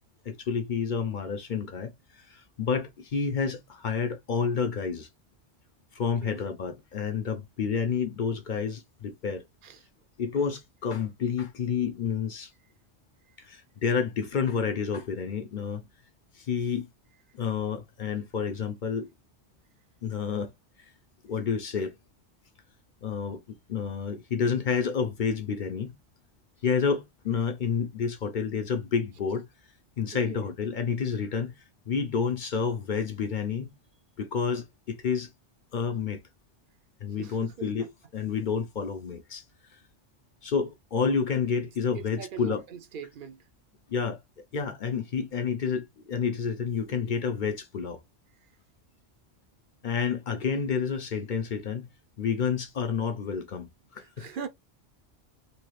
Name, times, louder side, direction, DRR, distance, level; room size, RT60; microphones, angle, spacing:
voice 1, 0.3-5.1 5.9-9.4 10.2-12.5 13.4-15.9 16.3-16.9 17.3-19.1 20.0-20.5 21.2-22.0 23.0-25.9 26.6-29.5 30.0-31.5 31.9-33.7 34.2-35.3 35.7-36.2 37.0-37.9 38.1-39.4 40.4-42.6 43.9-44.2 44.5-48.0 49.8-51.9 52.2-53.7 53.9-54.3, left 6 dB, 55° left, 0.6 m, -29 dB
voice 2, 30.1-30.5 37.2-37.9 41.9-43.4 54.0-54.5, right 6 dB, 55° right, 0.7 m, -41 dB
3.0 x 2.3 x 3.0 m
omnidirectional pair, 1.2 m